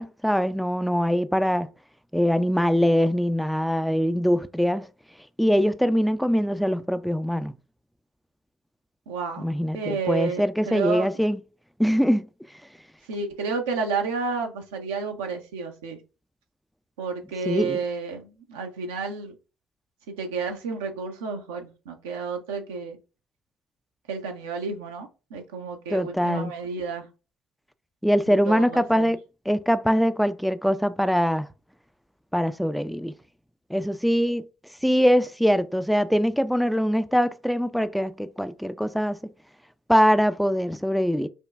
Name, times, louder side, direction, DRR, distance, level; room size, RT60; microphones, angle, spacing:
voice 1, 0.0-1.7 2.1-4.9 5.4-7.5 9.4-11.4 11.8-12.3 17.5-17.8 25.9-26.5 28.0-29.2 29.5-31.5 32.3-33.1 33.7-34.4 34.8-39.2 39.9-41.3, equal, ahead, 0.3 m, -23 dB
voice 2, 9.1-9.5 9.7-11.1 13.1-16.0 17.0-19.3 20.1-23.0 24.1-27.1 28.3-29.1, right 4 dB, 75° right, 0.6 m, -31 dB
5.2 x 2.2 x 2.4 m
figure-of-eight pair, 50°, 0 cm